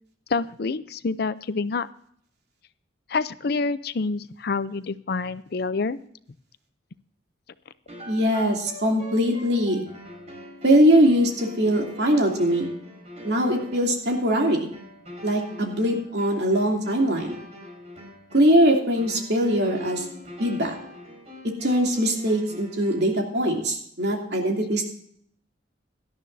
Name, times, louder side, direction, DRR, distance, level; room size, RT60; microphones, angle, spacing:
voice 1, 0.3-1.9 3.1-6.0, left 4 dB, 55° left, 15 dB, 0.5 m, -27 dB
sound 1, 7.9-23.2, left 1 dB, 35° right, 4.4 m, -43 dB
voice 2, 8.1-9.8 10.6-12.7 13.2-14.7 15.2-17.4 18.3-20.0 20.4-20.7 21.6-24.8, equal, 60° right, 1 dB, 2.8 m, -21 dB
17.5 x 12.0 x 2.7 m, 0.65 s
head